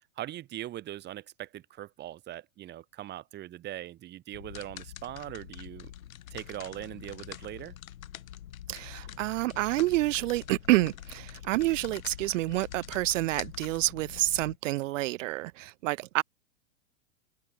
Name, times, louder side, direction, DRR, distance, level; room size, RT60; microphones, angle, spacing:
voice 1, 0.2-5.9 6.3-7.7, right 13 dB, 25° right, 1.5 m, -41 dB
sound 1, 4.3-14.6, left 11 dB, 80° left, 7.3 m, -45 dB
voice 2, 8.7-16.2, right 17 dB, 70° right, 0.5 m, -28 dB
supercardioid pair, 140°, 40 cm